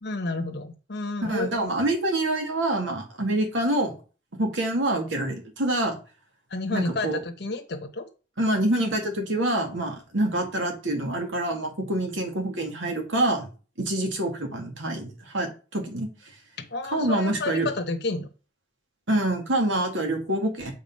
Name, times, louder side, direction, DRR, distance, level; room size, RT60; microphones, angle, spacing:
voice 1, 0.0-1.7 6.5-8.1 16.6-18.3, left 2 dB, 60° left, 4 dB, 1.0 m, -31 dB
voice 2, 1.2-3.9 4.4-6.0 6.7-7.2 8.4-13.5 13.8-16.1 16.9-17.7 19.1-20.7, right 1 dB, 75° right, 3 dB, 2.1 m, -26 dB
7.1 x 4.0 x 5.4 m, 0.34 s
head